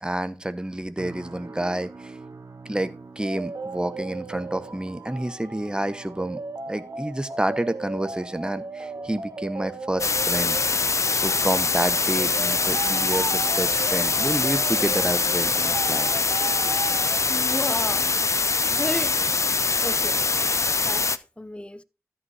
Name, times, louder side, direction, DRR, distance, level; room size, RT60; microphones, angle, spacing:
voice 1, 0.0-2.1 2.6-6.4 6.7-16.1, right 1 dB, 15° right, 1.0 m, -29 dB
sound 1, 1.0-16.2 16.5-16.9 17.4-17.6, right 3 dB, 65° right, 1.0 m, -49 dB
sound 2, 3.2-17.2, right 3 dB, 85° right, 1.3 m, -36 dB
sound 3, 10.0-21.2, left 4 dB, 60° left, 0.5 m, -23 dB
voice 2, 17.3-19.2 19.8-21.8, left 1 dB, 20° left, 0.7 m, -34 dB
13.5 x 5.6 x 4.2 m
wide cardioid pair, 70°, 6 cm